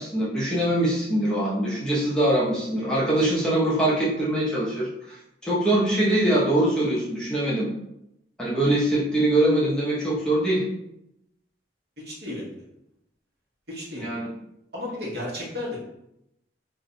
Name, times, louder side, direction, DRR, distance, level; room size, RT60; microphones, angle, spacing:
voice 1, 0.0-5.2 5.4-7.7 8.4-10.6 14.0-14.3, right 1 dB, 5° left, -7 dB, 0.6 m, -23 dB
voice 2, 12.0-12.6 13.7-14.0 14.7-15.8, left 1 dB, 60° right, -5 dB, 1.0 m, -33 dB
2.5 x 2.2 x 3.8 m, 0.82 s
head